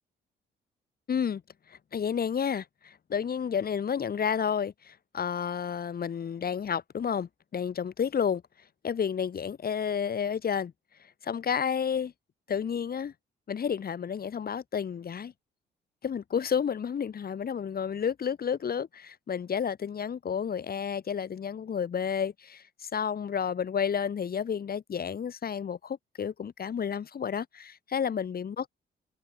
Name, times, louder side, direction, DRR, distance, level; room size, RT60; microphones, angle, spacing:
voice 1, 1.1-1.4 1.7-8.4 8.8-10.7 11.2-12.1 12.5-13.1 13.5-15.3 16.0-28.7, left 7 dB, 50° left, 3.9 m, -31 dB
cardioid pair, 90°, 20 cm